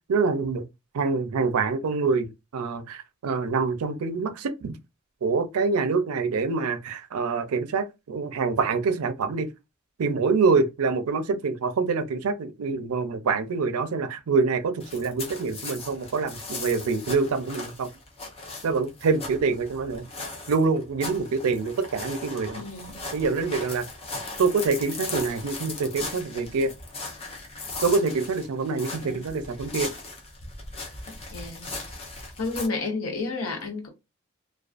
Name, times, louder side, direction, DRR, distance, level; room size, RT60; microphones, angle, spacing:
voice 1, 0.1-0.6 0.9-4.8 5.2-9.5 10.0-17.9 18.6-20.0 20.5-22.6 23.1-23.8 24.4-26.7 27.8-29.9, right 4 dB, 80° right, 0.4 m, -25 dB
sound 1, 14.8-32.7, left 3 dB, 25° left, 0.5 m, -38 dB
voice 2, 22.5-23.0 29.0-29.2 31.3-31.7 32.4-33.9, left 3 dB, 75° left, 0.9 m, -31 dB
2.4 x 2.2 x 2.3 m
head